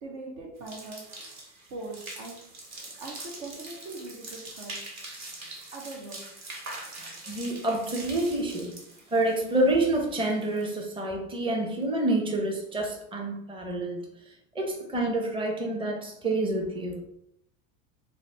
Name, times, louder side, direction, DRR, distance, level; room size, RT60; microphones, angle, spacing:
voice 1, 0.0-1.4 1.7-5.0 5.7-6.4, right 2 dB, 70° right, 0 dB, 1.1 m, -42 dB
sound 1, 0.6-10.8, right 2 dB, 40° right, 1.0 m, -43 dB
voice 2, 7.3-8.8 9.1-14.0 14.5-17.0, right 2 dB, 10° right, 1 dB, 0.6 m, -28 dB
4.0 x 2.0 x 3.3 m, 0.76 s
hypercardioid pair, 100°, 42 cm